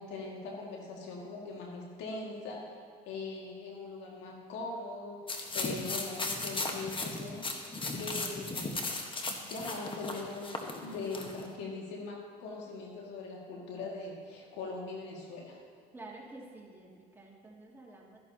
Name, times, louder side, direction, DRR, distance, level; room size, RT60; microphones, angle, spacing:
voice 1, 0.0-2.8 3.1-9.0 9.4-15.6, left 3 dB, 80° left, -2 dB, 2.1 m, -41 dB
sound 1, 5.3-11.5, left 2 dB, 30° left, 1.3 m, -36 dB
voice 2, 15.9-18.2, right 2 dB, 10° right, -3 dB, 2.4 m, -50 dB
13.5 x 11.0 x 2.9 m, 2.1 s
supercardioid pair, 80°, 18 cm